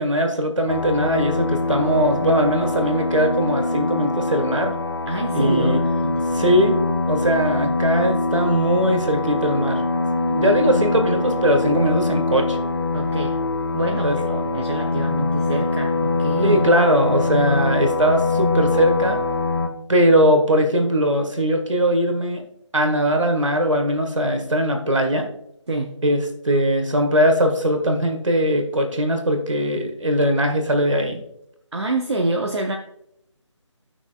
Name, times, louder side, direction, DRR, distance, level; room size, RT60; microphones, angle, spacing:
voice 1, 0.0-4.7 5.3-5.8 6.3-6.8 7.1-10.0 10.3-12.6 14.0-14.2 16.4-19.2 19.9-22.4 22.7-25.3 26.0-26.2 26.4-31.2, equal, 75° right, 4 dB, 1.6 m, -20 dB
sound 1, 0.7-19.7, left 3 dB, 50° left, 0.9 m, -23 dB
voice 2, 5.1-6.6 10.3-10.8 12.9-13.3 13.7-16.6 25.7-25.9 31.7-32.8, right 2 dB, 60° right, 3 dB, 0.7 m, -27 dB
14.0 x 6.0 x 2.3 m, 0.78 s
figure-of-eight pair, 155°, 16 cm